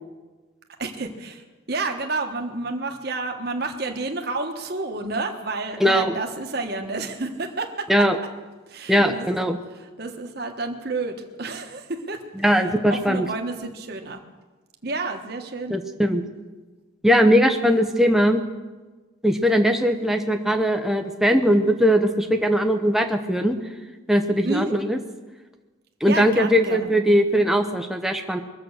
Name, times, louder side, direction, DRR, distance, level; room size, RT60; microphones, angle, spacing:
voice 1, 0.8-8.1 8.7-9.3 9.8-12.2 12.5-14.2 14.8-15.8 24.4-24.7 26.0-26.9, right 3 dB, 50° right, 3 dB, 1.4 m, -30 dB
voice 2, 8.9-9.6 12.4-13.3 15.7-16.2 17.0-18.4 19.2-23.5 24.1-25.0 26.0-28.4, equal, ahead, 4 dB, 0.8 m, -20 dB
22.0 x 7.7 x 6.5 m, 1.3 s
head